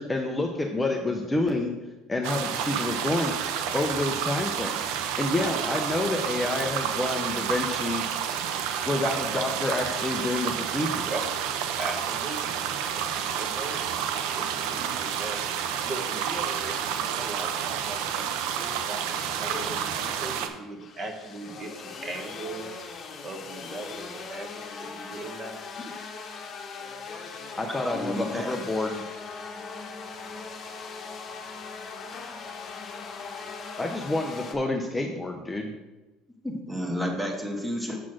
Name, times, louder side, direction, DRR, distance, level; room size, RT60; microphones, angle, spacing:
voice 1, 0.0-1.7 2.1-3.3 3.7-4.8 5.2-8.0 8.9-11.1 27.6-29.0 33.8-35.7, left 2 dB, 10° left, 2 dB, 0.5 m, -28 dB
sound 1, 2.2-20.5, right 8 dB, 80° right, 0.7 m, -30 dB
voice 2, 5.5-5.8 10.9-11.2 11.8-12.6 13.3-13.9 14.3-22.8 23.2-25.6, right 2 dB, 30° right, 3 dB, 1.1 m, -39 dB
sound 2, 19.3-34.5, left 4 dB, 35° left, 0.9 m, -40 dB
voice 3, 27.6-28.5 36.4-38.0, equal, 5° right, 1 dB, 1.2 m, -31 dB
7.4 x 4.1 x 6.2 m, 1.1 s
cardioid pair, 150°, 0 cm